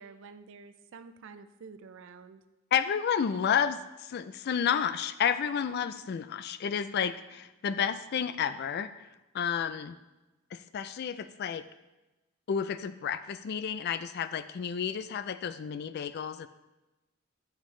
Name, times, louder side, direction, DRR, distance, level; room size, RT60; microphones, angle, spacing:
voice 1, 0.0-2.4, right 5 dB, 60° right, 10 dB, 0.4 m, -49 dB
voice 2, 2.7-10.0 10.5-11.6 12.5-16.5, left 7 dB, 50° left, 13 dB, 0.3 m, -31 dB
7.3 x 6.2 x 3.2 m, 1.1 s
head